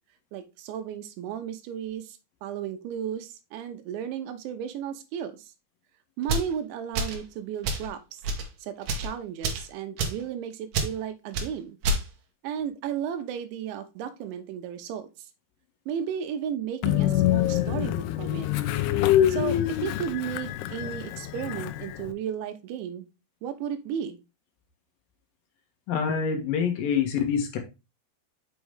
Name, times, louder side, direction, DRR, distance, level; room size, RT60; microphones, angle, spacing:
voice 1, 0.3-5.4 6.2-8.2 8.6-11.8 12.4-15.1 15.9-18.5 19.3-23.1 23.4-24.2, right 8 dB, 85° right, 8 dB, 3.3 m, -34 dB
sound 1, 6.2-6.5 6.9-7.2 7.6-7.9 8.2-8.5 8.8-9.1 9.4-9.7 10.0-10.2 10.7-10.9 11.3-11.5 11.8-12.0, right 2 dB, 65° right, 2.4 m, -28 dB
Train, 16.8-22.1, left 12 dB, 80° left, 2.3 m, -25 dB
voice 2, 25.9-27.6, left 7 dB, 65° left, 4 dB, 2.6 m, -26 dB
6.4 x 5.9 x 3.4 m, 0.26 s
omnidirectional pair, 5.2 m